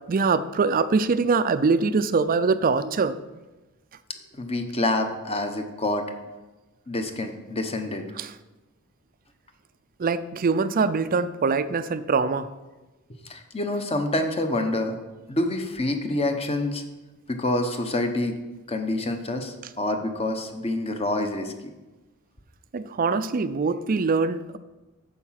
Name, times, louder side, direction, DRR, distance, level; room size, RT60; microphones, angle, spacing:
voice 1, 0.1-3.2 8.2-8.3 10.0-12.5 22.7-24.6, right 4 dB, 40° right, 13 dB, 0.4 m, -23 dB
voice 2, 4.3-6.1 6.9-8.0 13.2-15.0 15.3-16.8 17.3-18.4 18.7-21.7, left 1 dB, 25° left, 6 dB, 1.0 m, -27 dB
9.2 x 7.2 x 5.8 m, 1.1 s
head